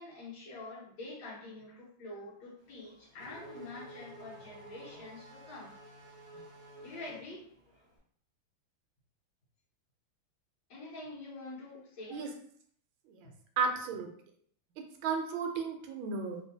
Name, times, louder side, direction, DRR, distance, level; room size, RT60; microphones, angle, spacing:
voice 1, 0.0-5.8 6.3-6.5 6.8-7.4 10.7-12.2, left 2 dB, 70° left, -5 dB, 1.8 m, -46 dB
Race car auto racing / Accelerating revving vroom, 2.6-7.9, right 1 dB, 50° right, 0.4 m, -52 dB
voice 2, 13.6-14.1 15.0-16.4, right 5 dB, 75° right, 4 dB, 1.3 m, -33 dB
3.6 x 2.7 x 2.7 m, 0.62 s
omnidirectional pair, 2.3 m